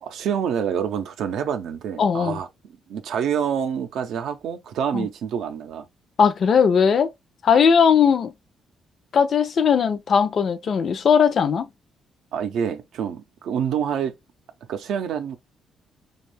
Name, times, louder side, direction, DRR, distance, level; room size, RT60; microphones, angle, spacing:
voice 1, 0.0-5.9 12.3-14.1 14.7-15.4, right 8 dB, 80° right, 0.4 m, -27 dB
voice 2, 2.0-2.4 4.9-5.1 6.2-7.1 7.4-8.3 9.1-11.7, left 6 dB, 55° left, 0.4 m, -18 dB
2.6 x 2.3 x 3.2 m
cardioid pair, 90°, 0 cm